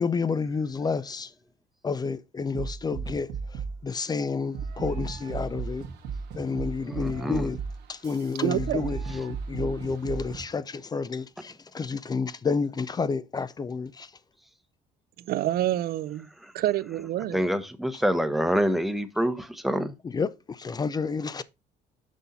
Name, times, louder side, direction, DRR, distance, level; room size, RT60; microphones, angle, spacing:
voice 1, 0.0-1.3 1.8-5.8 6.3-7.6 7.9-14.1 20.1-21.4, left 5 dB, 25° left, 0.4 m, -30 dB
sound 1, 2.5-3.8 4.5-10.5, right 5 dB, 85° right, 1.4 m, -35 dB
voice 2, 6.8-7.5 9.1-9.2 16.4-16.5 17.3-19.9, equal, ahead, 0.9 m, -27 dB
voice 3, 8.4-8.9 15.2-16.3 16.5-17.4, right 13 dB, 65° right, 0.5 m, -27 dB
6.3 x 5.5 x 3.9 m
cardioid pair, 110°, 17 cm